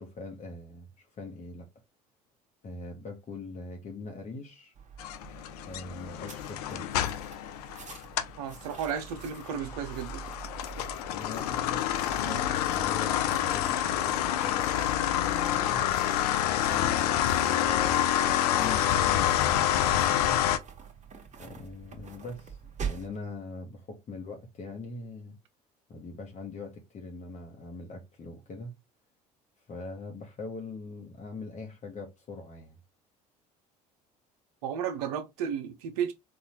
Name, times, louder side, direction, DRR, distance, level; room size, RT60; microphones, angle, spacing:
voice 1, 0.0-1.7 2.6-4.7 5.7-6.9 11.1-15.8 16.7-20.4 21.4-25.4 25.9-28.7 29.7-32.8, left 3 dB, 35° left, 0.8 m, -42 dB
Walking on Snow, 4.7-23.2, right 6 dB, 35° right, 1.1 m, -45 dB
sound 1, 5.0-8.4 8.8-20.6, left 12 dB, 80° left, 0.4 m, -27 dB
voice 2, 8.4-10.3 34.6-36.1, right 8 dB, 75° right, 0.5 m, -33 dB
4.0 x 2.3 x 2.9 m
hypercardioid pair, 65°, 20 cm